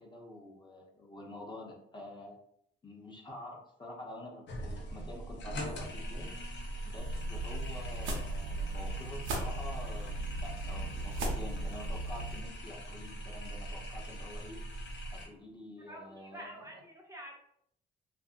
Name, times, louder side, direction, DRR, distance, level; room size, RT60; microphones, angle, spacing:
voice 1, 0.0-2.4 2.8-6.3 6.8-14.6 15.1-16.6, left 1 dB, 25° left, -1 dB, 0.7 m, -47 dB
sound 1, 4.5-15.3, right 1 dB, 65° left, 0.7 m, -41 dB
sound 2, 7.0-12.4, right 2 dB, 80° right, 0.7 m, -38 dB
voice 2, 15.8-17.3, right 1 dB, 15° right, -1 dB, 0.6 m, -48 dB
2.6 x 2.5 x 2.4 m, 0.69 s
cardioid pair, 90°, 20 cm